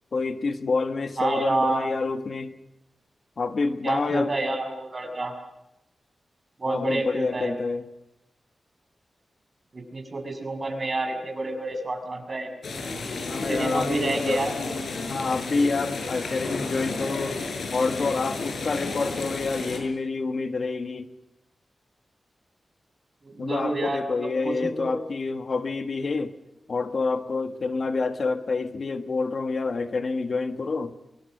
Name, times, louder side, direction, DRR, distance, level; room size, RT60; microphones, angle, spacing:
voice 1, 0.1-2.5 3.4-4.3 6.6-7.8 13.3-14.4 15.1-17.4 17.7-21.1 23.4-26.3 26.7-30.9, left 3 dB, 60° left, 7 dB, 1.6 m, -27 dB
voice 2, 1.2-1.9 3.8-5.3 6.6-7.5 9.7-12.5 13.5-14.5 23.2-24.9, right 2 dB, 40° right, 5 dB, 6.3 m, -29 dB
sound 1, 12.6-19.8, left 3 dB, 80° left, 6.4 m, -32 dB
25.0 x 23.5 x 6.6 m, 0.90 s
wide cardioid pair, 75°, 0 cm